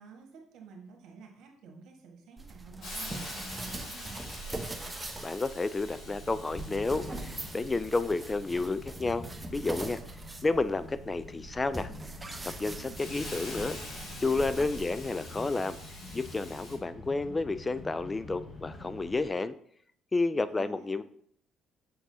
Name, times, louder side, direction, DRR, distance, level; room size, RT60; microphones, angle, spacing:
voice 1, 0.0-4.2 12.8-13.6 20.3-21.0, right 4 dB, 70° right, 2 dB, 1.5 m, -51 dB
sound 1, 2.4-15.1, right 2 dB, 15° right, 0.9 m, -42 dB
Hiss, 2.8-16.8, left 1 dB, 60° left, 2.3 m, -47 dB
voice 2, 5.2-9.3 9.5-10.0 10.4-11.9 12.4-13.8 14.2-15.8 16.1-19.5 20.1-21.0, left 3 dB, 25° left, 13 dB, 0.3 m, -31 dB
sound 2, 5.9-19.2, left 2 dB, 45° left, 1.4 m, -47 dB
6.1 x 5.9 x 2.7 m, 0.64 s
hypercardioid pair, 60°, 0 cm